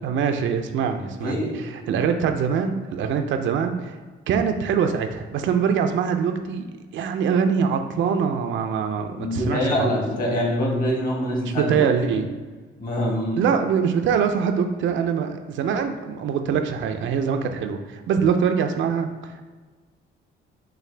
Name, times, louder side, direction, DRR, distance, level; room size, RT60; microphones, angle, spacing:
voice 1, 0.0-4.0 4.3-10.0 11.5-12.3 13.4-19.4, right 6 dB, 70° right, 6 dB, 0.4 m, -23 dB
voice 2, 1.2-1.6 9.2-12.1 12.8-13.4, equal, 45° left, -2 dB, 1.4 m, -25 dB
5.7 x 2.1 x 3.2 m, 1.4 s
cardioid pair, 90°, 20 cm